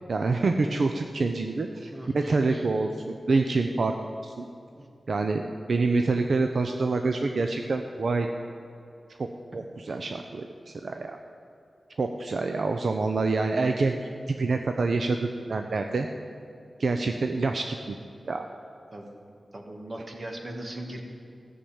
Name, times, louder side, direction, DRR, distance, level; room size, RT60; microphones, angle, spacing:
voice 1, 0.1-4.0 4.2-4.5 5.1-5.4 5.7-8.3 9.2-9.3 9.5-11.2 12.0-16.1 16.8-18.0 18.3-18.5, right 3 dB, 70° right, 5 dB, 0.6 m, -26 dB
voice 2, 1.9-2.7 4.8-4.9 18.9-19.1 19.5-21.0, right 1 dB, 40° right, 2 dB, 1.9 m, -39 dB
15.0 x 7.0 x 8.7 m, 2.6 s
wide cardioid pair, 110°, 0 cm